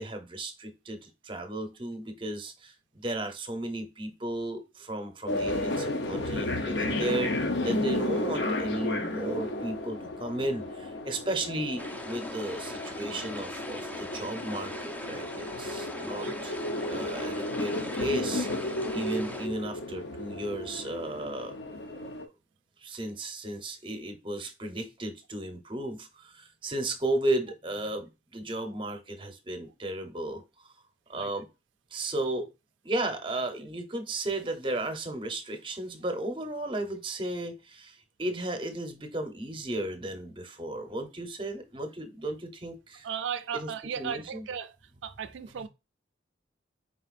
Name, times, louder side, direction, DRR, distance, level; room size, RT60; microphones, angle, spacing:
voice 1, 0.0-7.3 7.6-16.5 16.9-21.5 22.8-30.7 31.1-31.5 31.9-32.5 32.8-43.1 43.5-43.7 44.0-44.5 45.6-45.7, right 1 dB, 25° right, 0.7 m, -34 dB
sound 1, 5.3-22.3, left 1 dB, 70° left, 0.7 m, -33 dB
sound 2, 11.8-19.5, left 1 dB, 10° left, 0.4 m, -41 dB
voice 2, 43.0-44.8 45.0-45.7, right 7 dB, 85° right, 0.3 m, -36 dB
4.5 x 3.8 x 2.4 m
head